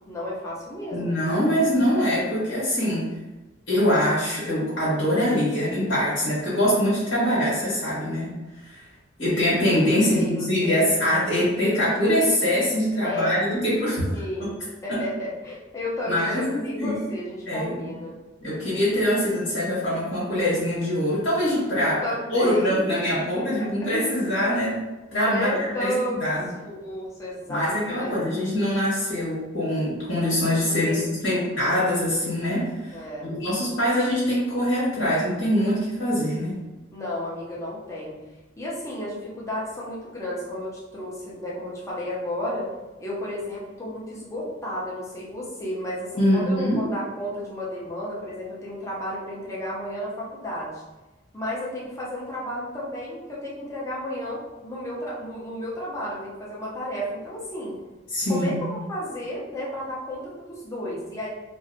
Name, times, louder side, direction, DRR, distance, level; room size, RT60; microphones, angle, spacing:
voice 1, 0.1-1.5 10.0-10.9 13.0-13.4 14.1-14.5 14.8-18.1 21.8-22.8 23.6-23.9 25.2-28.2 30.6-31.0 31.2-31.5 32.9-33.3 36.9-38.1 38.6-42.7 43.0-50.8 51.3-57.8 58.3-61.3, left 1 dB, 15° left, -6 dB, 0.6 m, -32 dB
voice 2, 0.9-3.1 3.7-8.3 8.6-8.8 9.2-14.1 14.4-14.5 14.9-15.0 16.1-17.0 17.5-17.7 18.4-21.9 22.3-24.8 25.1-25.5 25.8-25.9 26.2-26.5 27.5-36.5 46.2-46.8 58.1-58.6, equal, 85° left, -9 dB, 1.2 m, -23 dB
2.6 x 2.1 x 2.6 m, 1.1 s
head